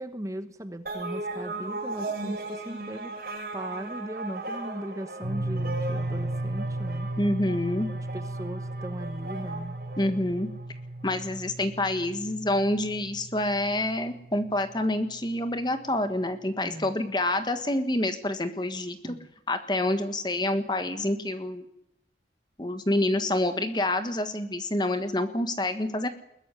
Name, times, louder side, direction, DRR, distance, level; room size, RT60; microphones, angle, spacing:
voice 1, 0.0-3.1 3.5-7.1 7.9-9.8 16.6-16.9 19.0-19.3, right 1 dB, 20° right, 9 dB, 1.1 m, -38 dB
sound 1, 0.9-10.6, right 2 dB, 55° right, 7.0 m, -37 dB
sound 2, 5.2-15.4, right 1 dB, 70° right, 6.0 m, -35 dB
voice 2, 7.2-7.9 10.0-10.5 11.0-19.2 19.5-21.6 22.6-26.1, left 1 dB, 25° left, 9 dB, 1.5 m, -27 dB
21.5 x 13.0 x 10.0 m, 0.79 s
head